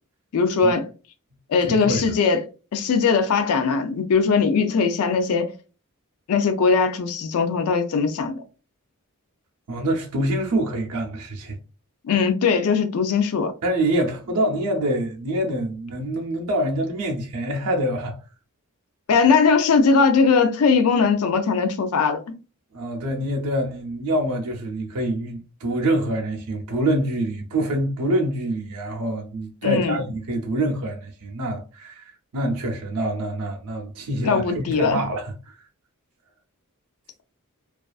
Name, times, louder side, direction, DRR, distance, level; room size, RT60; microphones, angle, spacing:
voice 1, 0.3-0.9 1.5-2.4 2.7-5.5 6.3-8.4 12.0-13.5 19.1-22.2 29.6-30.0 34.2-35.0, left 5 dB, 75° left, 0.4 m, -20 dB
voice 2, 1.6-2.2 9.7-11.6 13.6-18.2 22.7-35.6, right 1 dB, 90° right, 0.5 m, -25 dB
2.4 x 2.3 x 2.3 m
head